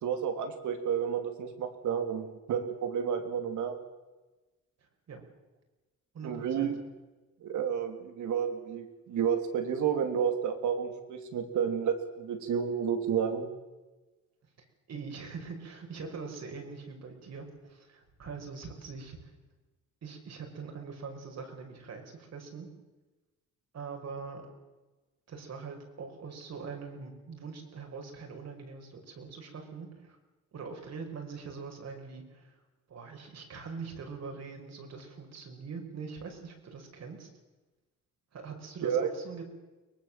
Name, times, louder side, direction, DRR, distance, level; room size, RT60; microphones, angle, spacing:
voice 1, 0.0-3.8 6.2-6.8 7.4-13.4 38.8-39.1, right 7 dB, 75° right, 7 dB, 3.4 m, -31 dB
voice 2, 6.1-6.7 14.9-19.3 20.0-22.7 23.7-24.4 25.3-30.2 30.5-32.5 32.9-37.3 38.3-39.5, right 5 dB, 60° right, 3 dB, 6.0 m, -43 dB
23.5 x 19.5 x 7.8 m, 1.1 s
cardioid pair, 90°, 30 cm